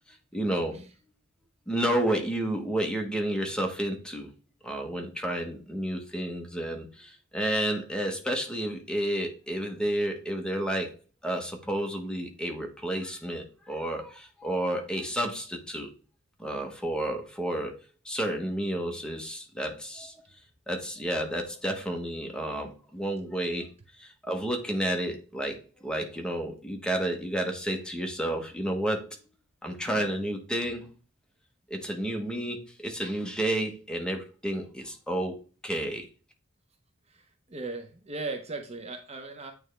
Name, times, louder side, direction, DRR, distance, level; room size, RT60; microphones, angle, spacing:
voice 1, 0.3-0.8 1.7-4.3 4.6-10.9 11.2-15.9 16.4-17.8 18.0-20.2 20.7-23.7 24.0-29.1 29.6-30.9 31.7-35.4 35.6-36.1, right 1 dB, 5° left, 3 dB, 1.1 m, -31 dB
voice 2, 37.5-39.5, right 3 dB, 30° right, 4 dB, 0.7 m, -37 dB
8.9 x 3.5 x 3.3 m, 0.36 s
head